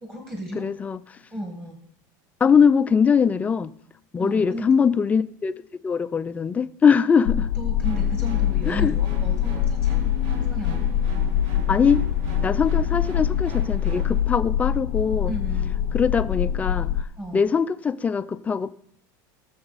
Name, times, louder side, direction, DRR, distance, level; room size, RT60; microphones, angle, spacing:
voice 1, 0.0-0.7 1.3-1.8 4.2-4.7 7.6-10.0 10.5-10.9 15.3-15.7 17.2-17.5, equal, 15° right, 1.8 m, -34 dB
voice 2, 0.6-1.0 2.4-3.7 4.1-7.5 8.7-8.9 11.7-12.0 12.4-15.3 15.9-16.9 17.3-18.7, left 6 dB, 15° left, 0.4 m, -21 dB
sound 1, 7.3-17.0, left 10 dB, 85° left, 0.6 m, -24 dB
sound 2, 7.8-14.2, right 5 dB, 45° right, 1.8 m, -40 dB
18.0 x 7.0 x 4.0 m
supercardioid pair, 155°, 10 cm